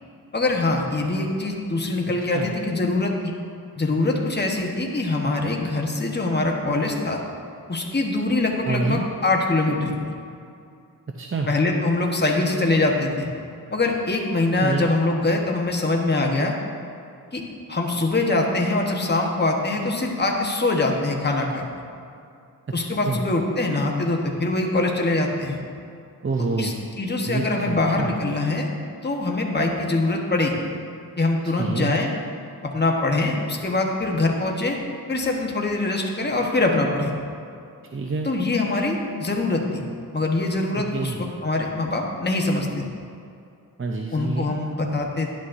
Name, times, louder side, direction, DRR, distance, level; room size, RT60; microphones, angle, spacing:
voice 1, 0.3-3.3 3.8-7.2 7.7-9.9 11.5-13.3 13.7-16.5 17.3-17.4 17.7-21.6 22.7-25.6 26.6-28.7 29.0-30.6 31.2-32.1 32.6-34.8 35.1-37.1 38.2-39.8 40.1-42.8 44.1-45.3, left 2 dB, 25° left, 0 dB, 1.1 m, -23 dB
voice 2, 8.6-9.1 11.2-11.5 14.6-14.9 23.0-23.2 26.2-26.8 27.2-28.1 31.6-32.0 37.9-38.3 40.9-41.2 43.8-44.5, right 3 dB, 35° right, 1 dB, 0.6 m, -27 dB
11.0 x 8.4 x 2.6 m, 2.5 s
wide cardioid pair, 70°, 37 cm